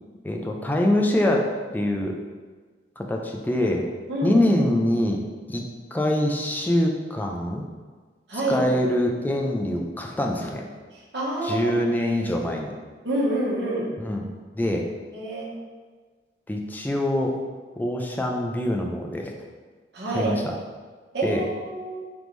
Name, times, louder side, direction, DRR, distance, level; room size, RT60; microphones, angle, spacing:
voice 1, 0.2-1.5 1.7-2.1 3.0-3.8 4.2-5.2 5.5-5.6 5.9-7.7 8.5-10.6 11.4-12.7 14.0-14.9 16.5-17.4 17.8-19.3 20.1-20.4 21.2-21.4, left 1 dB, 10° left, 1 dB, 0.4 m, -24 dB
voice 2, 8.3-8.6 10.9-11.7 13.0-13.9 15.1-15.5 19.9-20.3 21.1-22.0, right 1 dB, 75° right, -6 dB, 1.2 m, -27 dB
3.9 x 3.5 x 3.1 m, 1.4 s
head